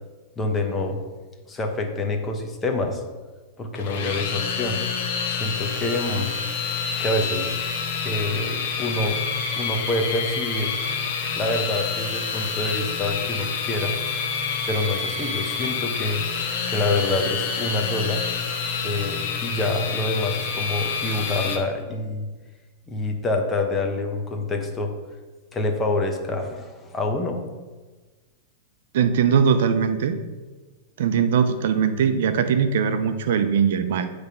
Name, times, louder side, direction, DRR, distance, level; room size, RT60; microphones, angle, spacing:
voice 1, 0.4-1.0 1.5-3.0 3.6-4.8 5.3-6.3 7.0-7.5 8.0-9.2 9.5-10.7 11.4-14.0 14.7-16.2 16.7-18.2 18.8-22.3 22.9-24.9 25.5-27.4, left 2 dB, 15° left, 4 dB, 0.9 m, -26 dB
sound 1, 3.8-21.6, left 6 dB, 60° left, 1.1 m, -28 dB
voice 2, 28.9-30.2 31.0-34.1, right 7 dB, 65° right, 9 dB, 0.6 m, -21 dB
8.8 x 3.4 x 5.5 m, 1.3 s
supercardioid pair, 145°, 0 cm